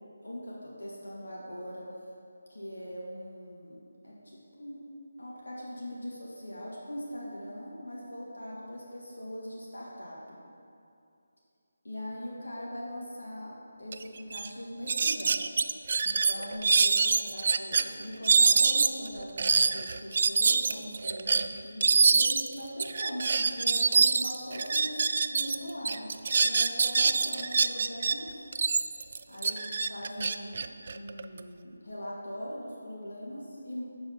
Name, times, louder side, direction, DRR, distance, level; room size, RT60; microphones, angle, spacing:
voice 1, 0.2-1.9 2.5-4.8 5.2-10.4 11.8-13.5 13.8-15.4 16.0-25.0 25.3-26.1 26.4-28.3 29.3-30.6 30.9-33.8, equal, 80° left, -5 dB, 2.3 m, -41 dB
sound 1, 13.9-14.0 14.3-14.5 14.9-17.8 18.2-25.6 25.8-28.1 28.5-31.4, right 5 dB, 45° right, 0.3 m, -25 dB
11.0 x 4.8 x 5.9 m, 2.5 s
figure-of-eight pair, 160°, 0 cm